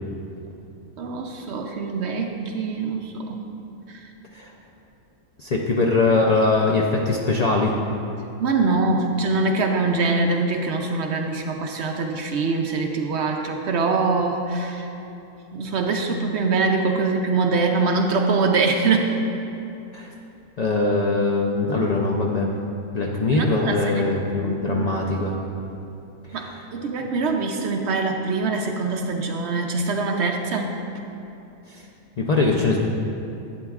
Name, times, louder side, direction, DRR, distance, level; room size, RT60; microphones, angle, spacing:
voice 1, 1.0-3.4 3.9-4.0 5.6-5.7 8.4-14.9 15.5-19.2 23.3-24.1 24.4-24.9 26.3-30.8, right 3 dB, 65° right, 3 dB, 0.7 m, -23 dB
voice 2, 5.4-7.8 19.9-20.1 20.6-22.5 22.9-25.4 26.3-26.5 31.7-31.8 32.2-32.8, left 3 dB, 85° left, -1 dB, 0.3 m, -22 dB
11.0 x 8.2 x 2.4 m, 2.8 s
omnidirectional pair, 1.5 m